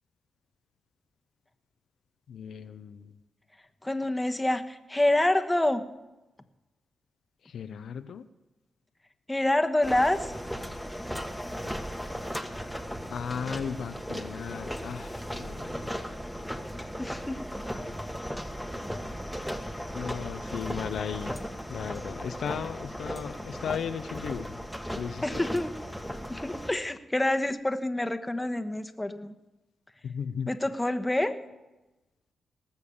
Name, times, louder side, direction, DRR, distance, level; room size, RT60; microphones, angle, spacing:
voice 1, 2.3-3.1 7.4-8.3 13.1-15.9 19.9-21.4 21.7-24.6 25.0-25.4 30.0-30.5, left 7 dB, 75° left, 10 dB, 0.6 m, -36 dB
voice 2, 3.8-5.8 9.3-10.3 17.0-17.5 25.2-25.8 26.3-29.4 30.5-31.4, left 1 dB, 15° left, 9 dB, 1.2 m, -27 dB
sound 1, 9.8-26.7, equal, ahead, 1.5 m, -37 dB
19.0 x 6.9 x 7.1 m, 1.0 s
supercardioid pair, 50°, 0 cm